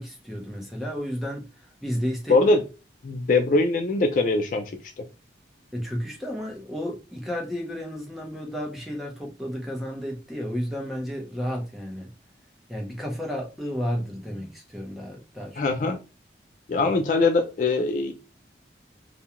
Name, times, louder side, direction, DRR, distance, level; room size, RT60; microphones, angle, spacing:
voice 1, 0.0-1.5 1.8-2.4 5.7-12.1 12.7-15.6, equal, ahead, 0.6 m, -32 dB
voice 2, 2.3-2.6 3.0-4.7 5.0-5.1 15.6-16.0 16.7-18.1, left 3 dB, 45° left, 0.3 m, -22 dB
2.4 x 2.2 x 2.8 m
head